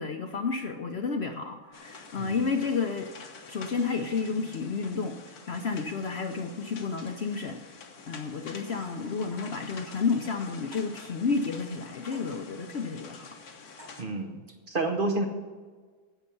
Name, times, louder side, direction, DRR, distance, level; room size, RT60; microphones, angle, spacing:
voice 1, 0.0-3.1 3.5-13.4, left 5 dB, 55° left, 5 dB, 0.8 m, -31 dB
sound 1, 1.7-14.0, left 4 dB, 70° left, 1.7 m, -47 dB
voice 2, 2.2-2.5 14.0-15.2, right 2 dB, 40° right, 4 dB, 1.0 m, -30 dB
sound 2, 8.7-11.3 12.1-12.7 13.8-14.3, equal, 60° right, 4.8 m, -54 dB
10.5 x 7.9 x 7.0 m, 1.5 s
omnidirectional pair, 1.7 m